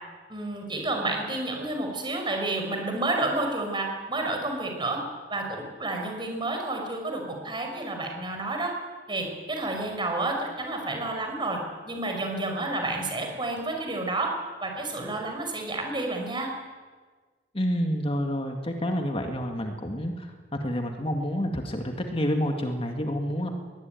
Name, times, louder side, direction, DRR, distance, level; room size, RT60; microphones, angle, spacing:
voice 1, 0.3-5.0 5.3-8.7 9.1-11.6 11.9-14.3 14.6-16.5, right 2 dB, 25° right, 3 dB, 5.6 m, -30 dB
voice 2, 17.5-20.3 20.6-23.5, equal, 30° left, 4 dB, 2.1 m, -28 dB
22.5 x 19.0 x 9.3 m, 1.4 s
head